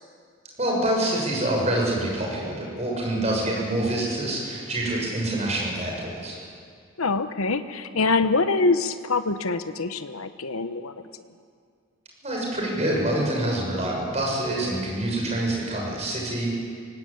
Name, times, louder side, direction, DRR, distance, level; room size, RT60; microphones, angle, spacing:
voice 1, 0.6-6.4 12.2-16.6, right 1 dB, 30° right, -2 dB, 6.3 m, -26 dB
voice 2, 7.0-11.0, left 3 dB, 85° left, 10 dB, 1.0 m, -24 dB
22.5 x 18.0 x 8.7 m, 2.2 s
head